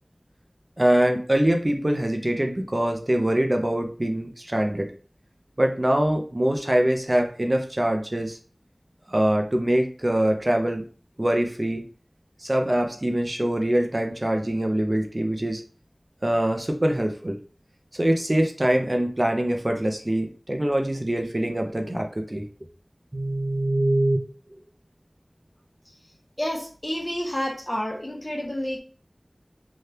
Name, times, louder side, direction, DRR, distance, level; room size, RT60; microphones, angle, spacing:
voice 1, 0.8-4.9 5.6-8.4 9.1-10.8 11.2-11.8 12.4-15.6 16.2-17.4 17.9-22.5 23.1-24.2, right 1 dB, 40° right, 3 dB, 0.4 m, -23 dB
voice 2, 26.4-28.8, equal, 30° left, 1 dB, 0.8 m, -29 dB
2.7 x 2.3 x 3.3 m, 0.41 s
wide cardioid pair, 40°, 0 cm